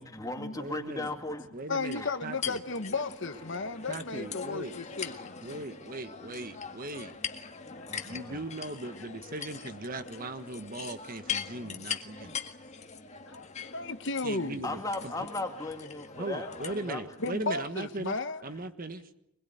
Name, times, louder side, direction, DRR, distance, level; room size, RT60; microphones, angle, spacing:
voice 1, 0.0-1.5 1.9-2.1 3.9-4.0 7.9-8.4 14.6-17.1, left 2 dB, 15° left, 2.4 m, -37 dB
voice 2, 0.5-1.1 1.5-2.6 3.9-4.7 5.4-7.2 8.0-12.4 14.2-15.3 16.2-18.2 18.4-19.1, right 2 dB, 40° right, 1.4 m, -39 dB
voice 3, 1.7-5.4 7.7-8.1 13.3-14.7 16.4-16.6 17.2-18.4, left 3 dB, 55° left, 1.4 m, -34 dB
sound 1, 1.9-17.3, left 7 dB, 30° left, 1.8 m, -41 dB
24.5 x 21.5 x 9.4 m
head